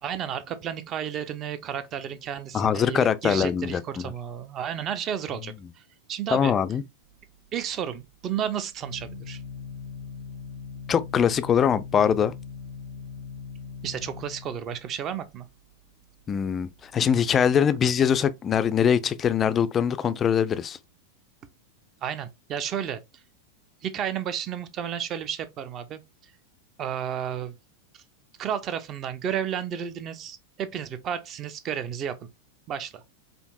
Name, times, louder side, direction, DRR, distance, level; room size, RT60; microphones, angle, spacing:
voice 1, 0.0-5.5 6.1-6.5 7.5-9.4 13.8-15.5 22.0-23.0 23.8-26.0 26.8-27.5 28.4-32.2 32.7-33.0, right 9 dB, 30° right, 0.5 m, -32 dB
voice 2, 2.5-4.1 6.3-6.8 10.9-12.3 16.3-20.8, left 8 dB, 25° left, 0.3 m, -23 dB
Organ, 7.0-17.5, left 5 dB, 70° right, 1.3 m, -41 dB
5.1 x 2.5 x 2.3 m
figure-of-eight pair, 90°, 0 cm